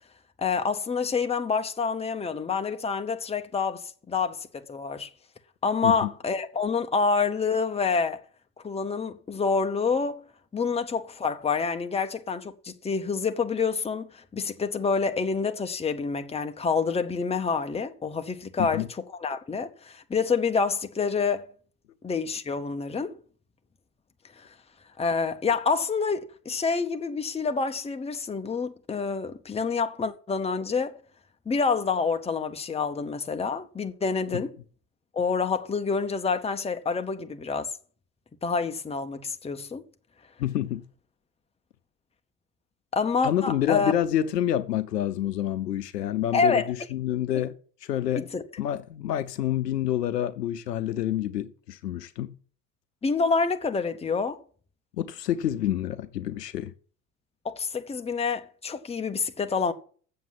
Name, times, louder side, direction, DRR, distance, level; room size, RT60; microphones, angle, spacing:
voice 1, 0.4-5.1 5.6-8.2 8.6-10.2 10.5-18.8 19.2-21.4 22.0-23.1 25.0-30.9 31.5-34.5 35.1-37.7 38.4-39.8 42.9-43.9 46.3-46.7 47.3-47.4 48.3-48.4 53.0-54.4 57.4-59.7, left 5 dB, 15° left, 1.0 m, -27 dB
voice 2, 40.4-40.8 43.2-47.6 47.8-48.3 48.6-52.3 55.0-56.7, left 11 dB, 80° left, 0.7 m, -28 dB
7.7 x 7.5 x 7.3 m
figure-of-eight pair, 65°, 48 cm